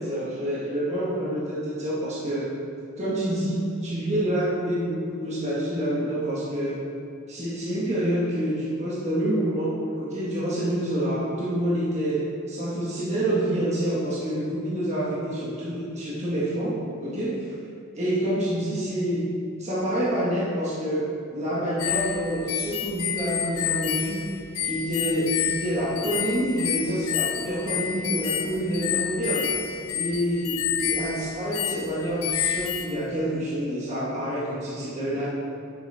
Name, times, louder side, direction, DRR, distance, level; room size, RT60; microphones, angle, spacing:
voice 1, 0.0-2.5 3.0-6.8 7.3-17.4 18.0-19.3 19.6-21.1 21.3-24.3 24.6-29.5 29.9-35.3, right 1 dB, 30° right, -8 dB, 1.6 m, -27 dB
sound 1, 21.8-32.9, left 9 dB, 80° left, 0.7 m, -29 dB
11.0 x 6.9 x 3.6 m, 2.4 s
head